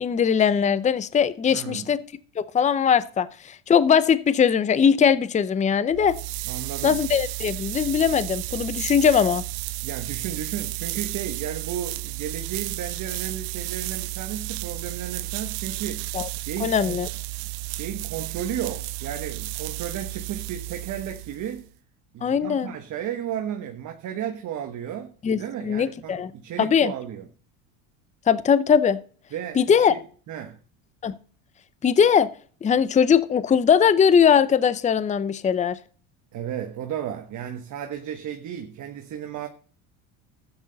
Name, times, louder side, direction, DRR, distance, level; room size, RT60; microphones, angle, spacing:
voice 1, 0.0-2.0 2.4-6.2 6.8-9.4 16.1-16.3 16.6-17.1 22.2-22.7 25.2-25.4 25.7-26.3 26.6-26.9 28.3-29.0 29.6-29.9 31.0-31.1 31.8-32.3 32.6-35.8, left 7 dB, 20° left, 0.6 m, -20 dB
voice 2, 1.5-1.9 6.5-7.0 9.8-16.1 16.4-17.0 17.7-21.7 22.1-27.3 29.3-30.0 30.3-30.6 36.3-39.5, right 9 dB, 45° right, 1.3 m, -34 dB
sound 1, 5.9-21.7, right 20 dB, 65° right, 0.6 m, -33 dB
13.0 x 8.9 x 4.0 m
supercardioid pair, 100°, 39 cm